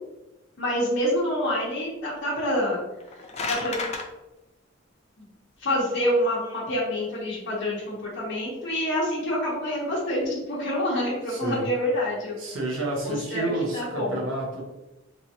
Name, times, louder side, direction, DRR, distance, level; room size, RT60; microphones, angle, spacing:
voice 1, 0.6-2.8 3.5-3.7 5.2-5.3 5.6-12.4 13.0-14.2, equal, 60° left, -8 dB, 0.9 m, -27 dB
sound 1, 2.9-4.1, left 3 dB, 35° left, 0.4 m, -31 dB
voice 2, 11.3-11.7 12.4-14.6, right 2 dB, 75° right, -1 dB, 0.8 m, -30 dB
2.9 x 2.6 x 2.7 m, 0.97 s
head